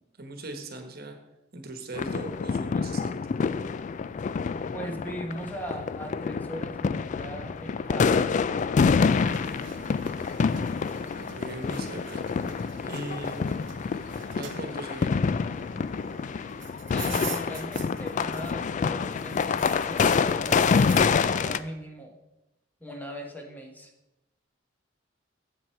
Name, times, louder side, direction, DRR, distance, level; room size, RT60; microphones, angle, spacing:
voice 1, 0.2-1.2 1.5-3.2 11.1-12.2 12.8-13.6 14.4-15.2 15.6-15.7, right 2 dB, 55° right, 6 dB, 1.2 m, -39 dB
sound 1, 2.0-21.6, left 5 dB, 40° left, 0.3 m, -27 dB
voice 2, 4.7-8.1 16.9-22.2 22.8-23.9, right 1 dB, 10° left, 2 dB, 1.0 m, -39 dB
sound 2, 9.1-18.7 19.0-21.1, right 8 dB, 70° right, 0.8 m, -45 dB
7.9 x 7.5 x 4.5 m, 0.94 s
head